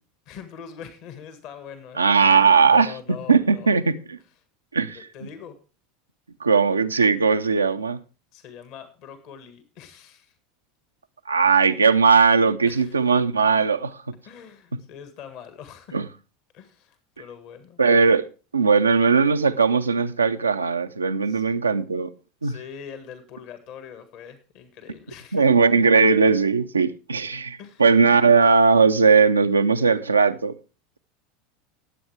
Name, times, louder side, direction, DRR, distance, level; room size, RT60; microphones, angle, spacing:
voice 1, 0.2-3.8 4.9-5.6 8.3-10.3 12.7-13.0 14.2-16.0 16.5-17.8 21.3-21.4 22.4-25.5 27.6-27.8, left 7 dB, 50° left, 1.7 m, -42 dB
voice 2, 2.0-2.9 3.3-4.2 4.7-5.0 6.4-8.0 11.3-14.0 15.9-16.1 17.8-18.3 18.5-22.1 22.4-22.6 25.3-30.5, right 5 dB, 85° right, 0.6 m, -18 dB
20.0 x 7.8 x 3.4 m
figure-of-eight pair, 80°, 0 cm